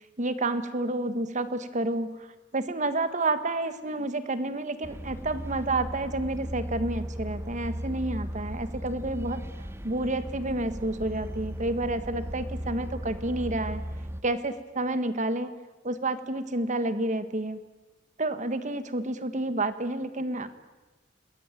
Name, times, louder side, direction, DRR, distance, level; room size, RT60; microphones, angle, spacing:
voice 1, 0.2-2.3 2.5-9.4 9.8-13.8 14.2-15.5 15.8-17.6 18.2-20.5, right 2 dB, 40° right, 12 dB, 1.6 m, -29 dB
sound 1, 4.8-14.2, equal, 15° right, 1.1 m, -37 dB
28.5 x 20.5 x 9.1 m, 1.2 s
head